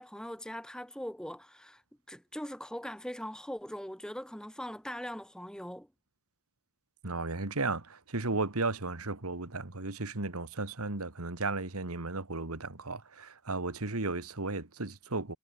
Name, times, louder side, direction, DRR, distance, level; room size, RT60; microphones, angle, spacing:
voice 1, 0.0-1.8 2.1-5.9, equal, 5° left, 2.1 m, -41 dB
voice 2, 7.0-15.4, right 3 dB, 85° right, 2.2 m, -34 dB
head